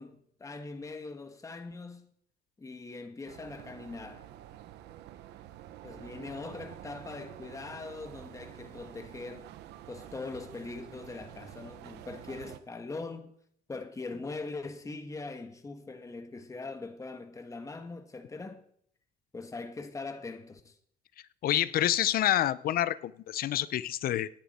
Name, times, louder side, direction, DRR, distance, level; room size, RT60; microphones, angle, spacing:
voice 1, 0.0-2.1 2.6-4.3 5.8-9.5 9.9-13.3 13.7-18.6 19.3-20.8, left 3 dB, 20° left, 1.5 m, -41 dB
sound 1, 3.3-12.6, right 12 dB, 80° right, 1.0 m, -48 dB
voice 2, 21.4-24.3, left 12 dB, 60° left, 0.7 m, -28 dB
17.5 x 10.5 x 4.3 m
cardioid pair, 110°, 17 cm